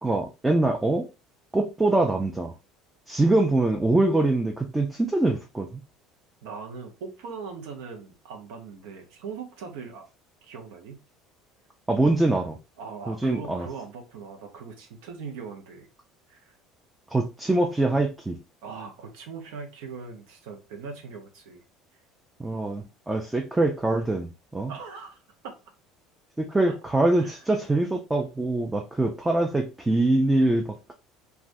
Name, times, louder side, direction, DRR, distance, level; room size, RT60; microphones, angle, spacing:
voice 1, 0.0-1.1 1.5-2.5 3.1-5.8 11.9-12.6 13.1-13.7 17.1-18.4 22.4-24.7 26.4-30.9, right 2 dB, 10° right, 0.4 m, -24 dB
voice 2, 6.4-10.1 10.4-11.0 12.8-15.9 16.3-16.5 18.6-21.6 24.7-25.5 26.7-26.8 27.1-27.4, right 5 dB, 85° right, 0.8 m, -40 dB
3.3 x 2.4 x 2.5 m
cardioid pair, 125°, 0 cm